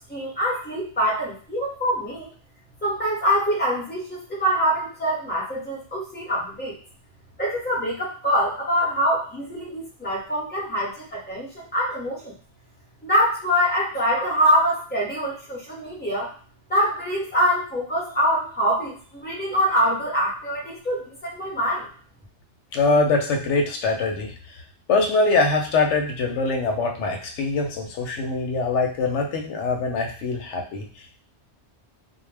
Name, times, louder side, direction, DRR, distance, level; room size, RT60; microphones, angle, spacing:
voice 1, 0.1-2.3 2.8-6.8 7.4-12.3 13.0-16.3 16.7-21.9, equal, 10° left, -5 dB, 0.8 m, -24 dB
voice 2, 22.7-24.6 24.9-31.2, left 3 dB, 85° left, 2 dB, 0.9 m, -23 dB
2.2 x 2.1 x 3.2 m, 0.42 s
omnidirectional pair, 1.2 m